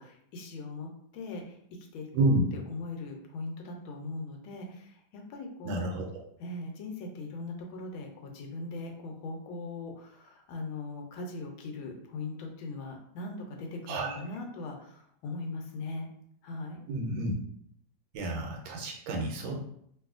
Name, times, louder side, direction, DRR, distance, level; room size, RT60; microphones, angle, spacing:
voice 1, 0.0-5.9 6.4-16.1 16.4-16.9, left 3 dB, 85° left, 2 dB, 1.4 m, -40 dB
voice 2, 2.1-2.5 5.6-6.1 13.9-14.2 16.9-17.3 18.1-19.6, right 1 dB, 80° right, 1 dB, 1.3 m, -29 dB
3.0 x 2.6 x 2.4 m, 0.69 s
omnidirectional pair, 2.2 m